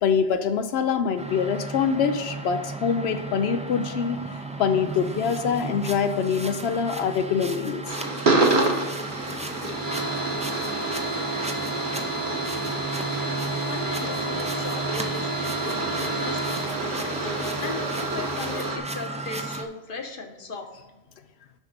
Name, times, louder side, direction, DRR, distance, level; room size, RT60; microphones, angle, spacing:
voice 1, 0.0-4.2 4.6-7.8 8.4-8.5 9.3-9.4 9.7-9.9, left 6 dB, 85° left, 8 dB, 0.9 m, -25 dB
sound 1, 1.2-19.6, right 2 dB, 10° right, 0.4 m, -34 dB
sound 2, 7.9-18.8, right 2 dB, 55° right, 1.3 m, -28 dB
sound 3, 9.1-18.6, right 1 dB, 30° right, 1.0 m, -41 dB
voice 2, 13.7-17.2 17.6-20.7, left 3 dB, 60° left, 4 dB, 1.2 m, -37 dB
7.1 x 6.0 x 5.1 m, 1.1 s
omnidirectional pair, 1.0 m